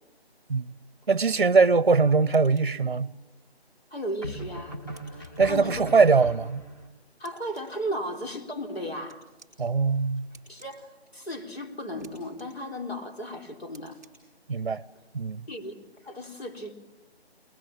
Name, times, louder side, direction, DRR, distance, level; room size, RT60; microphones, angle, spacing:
voice 1, 1.1-3.1 5.4-6.6 9.6-10.3 14.5-14.8 15.1-15.4, right 4 dB, 50° right, 0.7 m, -22 dB
sound 1, 1.6-2.1 4.2-6.9, right 1 dB, 20° left, 1.8 m, -39 dB
sound 2, 2.3-2.6 4.9-5.3 7.2-7.6 9.1-9.5 10.3-10.7 12.0-12.1 12.4-12.5 13.7-14.1, right 4 dB, ahead, 2.7 m, -53 dB
voice 2, 3.9-4.8 5.1-5.8 7.2-9.2 10.5-10.9 11.1-14.0 15.5-15.8 16.0-16.7, equal, 70° left, 3.9 m, -35 dB
22.5 x 21.0 x 7.3 m
figure-of-eight pair, 175°, 32 cm